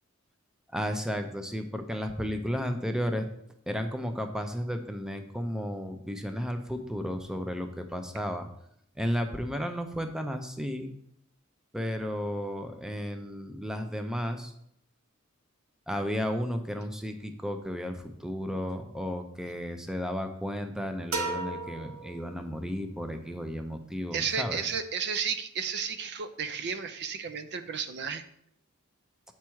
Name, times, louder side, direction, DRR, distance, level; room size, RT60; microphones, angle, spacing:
voice 1, 0.7-3.3 3.7-8.5 9.0-10.9 11.7-14.5 15.9-24.6, equal, 5° right, 6 dB, 0.5 m, -33 dB
sound 1, 21.1-22.9, right 3 dB, 85° right, 1.0 m, -35 dB
voice 2, 24.1-28.2, right 6 dB, 55° right, 10 dB, 0.5 m, -32 dB
7.4 x 4.6 x 4.5 m, 0.74 s
head